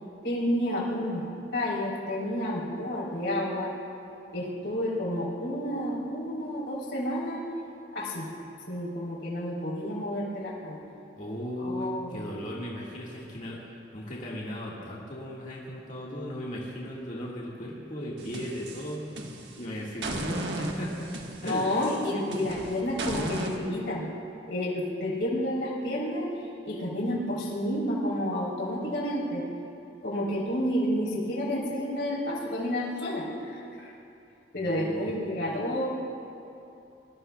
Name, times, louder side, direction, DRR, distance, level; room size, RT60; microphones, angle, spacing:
voice 1, 0.2-1.2 1.5-3.7 4.3-7.4 7.9-8.3 8.7-10.8 11.6-12.2 21.4-24.1 24.5-26.3 26.7-29.4 30.0-33.3 33.8-33.9 34.5-35.9, left 1 dB, 85° left, -5 dB, 3.6 m, -30 dB
voice 2, 11.2-13.6 13.9-19.1 19.6-21.1 21.4-21.7 34.6-35.1, equal, 45° left, -5 dB, 1.8 m, -36 dB
sound 1, 18.2-19.6 20.0-23.6, right 1 dB, 75° right, 1.4 m, -35 dB
24.0 x 19.5 x 2.3 m, 2.8 s
head